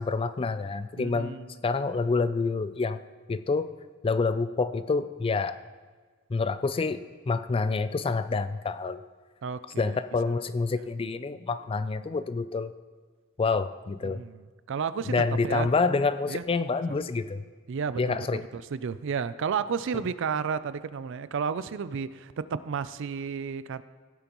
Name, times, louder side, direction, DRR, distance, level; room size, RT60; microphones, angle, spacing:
voice 1, 0.0-1.4 1.6-3.0 3.3-3.7 4.0-5.6 6.3-9.0 9.8-12.7 13.4-14.2 15.0-17.4 18.0-18.4, left 4 dB, 25° left, 13 dB, 0.4 m, -27 dB
voice 2, 1.0-1.5 9.4-10.0 10.3-10.4 14.0-14.4 14.7-15.1 15.4-15.7 16.3-16.4 17.7-23.8, right 6 dB, 65° right, 15 dB, 0.4 m, -32 dB
15.5 x 8.7 x 3.0 m, 1.5 s
head